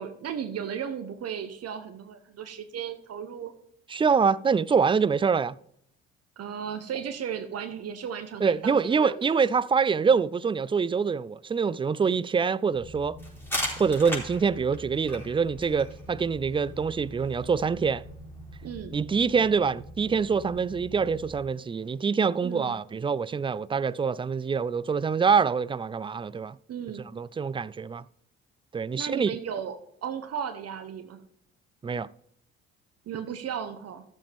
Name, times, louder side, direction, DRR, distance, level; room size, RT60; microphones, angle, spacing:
voice 1, 0.0-3.5 6.4-9.4 18.6-19.0 22.4-22.8 26.7-27.1 28.9-29.8 30.0-31.2 33.1-34.0, right 8 dB, 55° right, 1.0 m, -35 dB
voice 2, 3.9-5.6 8.4-13.2 13.8-18.0 18.9-26.6 27.1-28.0 28.7-29.3 31.8-32.1, right 5 dB, 20° right, 0.3 m, -25 dB
sound 1, 12.7-21.5, equal, 75° left, 2.1 m, -45 dB
sound 2, 13.2-18.7, equal, 5° left, 4.0 m, -38 dB
13.5 x 7.2 x 3.5 m
hypercardioid pair, 55°, 30 cm